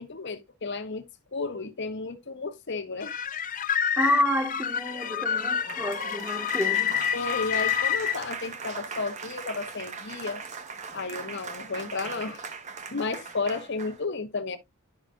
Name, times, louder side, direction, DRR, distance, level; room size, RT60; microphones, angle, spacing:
voice 1, 0.0-3.2 7.1-10.4 10.9-12.4 12.9-14.6, left 3 dB, 55° left, 1.0 m, -33 dB
sound 1, 3.0-8.2, left 9 dB, 40° left, 0.5 m, -28 dB
voice 2, 4.0-7.0, equal, 10° right, 1.1 m, -29 dB
Applause, 4.9-14.0, right 5 dB, 35° right, 0.9 m, -40 dB
11.5 x 4.8 x 2.4 m
head